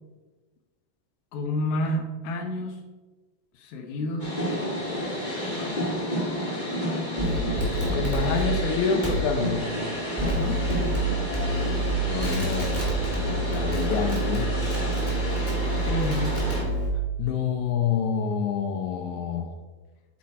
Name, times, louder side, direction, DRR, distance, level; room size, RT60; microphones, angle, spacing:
voice 1, 1.3-2.8 3.6-4.3 5.5-5.9 10.2-10.6 15.8-16.4, left 1 dB, 65° left, 3 dB, 2.0 m, -30 dB
sound 1, 4.2-16.6, equal, 25° left, 1.0 m, -30 dB
sound 2, 7.2-8.4 9.0-9.2 10.2-11.0 11.3-11.9 12.2-16.9, right 2 dB, 5° left, 1.5 m, -27 dB
voice 2, 7.9-9.7 12.1-12.8 13.5-14.5 17.2-19.5, left 7 dB, 85° left, 4 dB, 1.7 m, -27 dB
8.6 x 5.8 x 4.3 m, 1.3 s
omnidirectional pair, 4.3 m